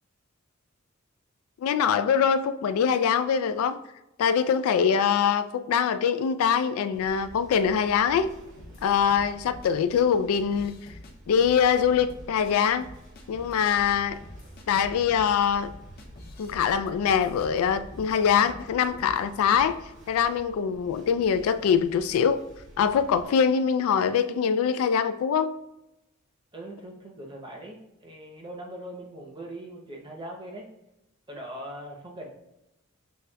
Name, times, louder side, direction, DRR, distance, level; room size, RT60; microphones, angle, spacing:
voice 1, 1.6-3.8 4.2-8.3 8.8-10.7 11.3-12.9 13.3-14.2 14.7-15.7 16.4-19.8 20.1-22.4 22.8-25.5, left 7 dB, 85° left, 14 dB, 0.3 m, -23 dB
sound 1, 6.9-23.3, right 1 dB, 55° right, 1.0 m, -49 dB
sound 2, 8.6-9.7 10.3-11.1 11.4-12.5 12.8-13.5 13.9-14.0 14.2-18.2 18.4-19.2 19.5-19.7, left 1 dB, 45° left, 0.6 m, -48 dB
voice 2, 26.5-30.7 31.3-32.3, right 1 dB, 20° right, 0 dB, 0.7 m, -41 dB
6.3 x 3.3 x 2.2 m, 0.91 s
head